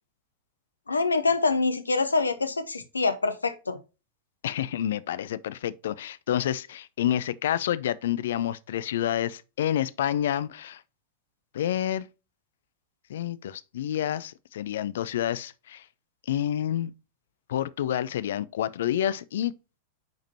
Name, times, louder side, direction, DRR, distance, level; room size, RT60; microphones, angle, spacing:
voice 1, 0.9-3.8, left 3 dB, 75° left, 1.1 m, -25 dB
voice 2, 4.4-10.8 11.5-12.1 13.1-15.8 16.3-16.9 17.5-19.5, left 11 dB, 60° left, 0.6 m, -28 dB
9.4 x 5.1 x 2.8 m
figure-of-eight pair, 90°, 0 cm